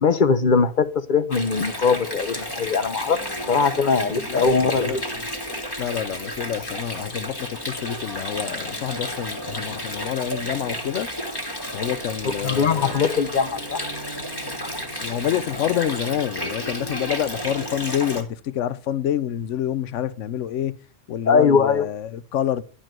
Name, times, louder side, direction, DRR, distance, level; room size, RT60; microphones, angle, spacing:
voice 1, 0.0-3.2 3.5-5.0 12.4-13.8 21.3-21.9, left 5 dB, 45° left, 0.9 m, -20 dB
Water, 1.3-18.2, equal, 20° left, 1.9 m, -32 dB
voice 2, 4.3-5.1 5.8-11.1 11.7-13.0 15.0-20.7 21.1-22.6, left 10 dB, 75° left, 1.0 m, -27 dB
11.5 x 5.2 x 7.4 m
omnidirectional pair, 1.3 m